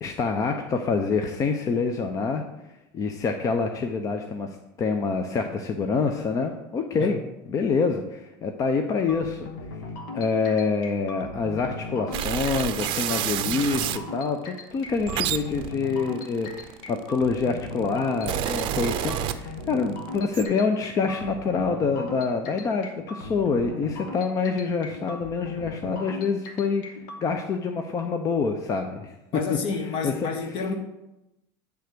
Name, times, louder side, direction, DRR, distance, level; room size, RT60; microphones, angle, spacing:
voice 1, 0.0-2.4 2.9-4.5 4.8-7.2 7.5-9.5 10.1-29.1 30.0-30.3, left 4 dB, 30° left, 5 dB, 0.6 m, -26 dB
sound 1, 9.1-27.2, left 3 dB, 75° left, 1.4 m, -38 dB
sound 2, 12.1-14.0 14.8-17.1 17.8-19.8 20.1-20.4, right 12 dB, 50° right, 0.6 m, -29 dB
voice 2, 29.3-30.7, left 4 dB, 55° left, 6 dB, 1.3 m, -29 dB
9.0 x 3.5 x 6.7 m, 0.95 s
supercardioid pair, 120°, 11 cm